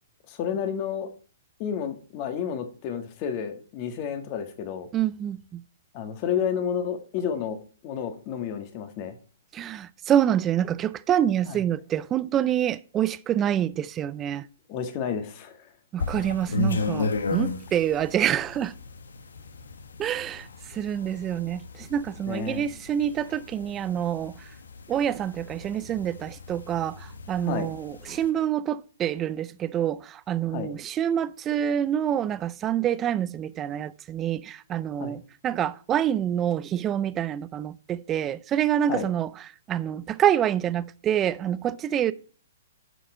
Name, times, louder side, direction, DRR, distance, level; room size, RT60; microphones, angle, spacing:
voice 1, 0.3-1.1 1.6-4.9 5.9-7.6 7.8-9.2 11.5-11.6 14.7-15.7 22.3-22.6 27.4-27.7 30.5-30.7 35.0-35.2 38.9-39.1, left 8 dB, 35° left, 1.7 m, -31 dB
voice 2, 4.9-5.6 9.5-14.5 15.9-18.7 20.0-24.5 24.9-39.3 39.7-42.1, right 10 dB, 20° right, 0.5 m, -27 dB
sound 1, 16.0-28.3, left 3 dB, 85° left, 1.2 m, -35 dB
11.0 x 6.1 x 4.4 m
hypercardioid pair, 135°, 0 cm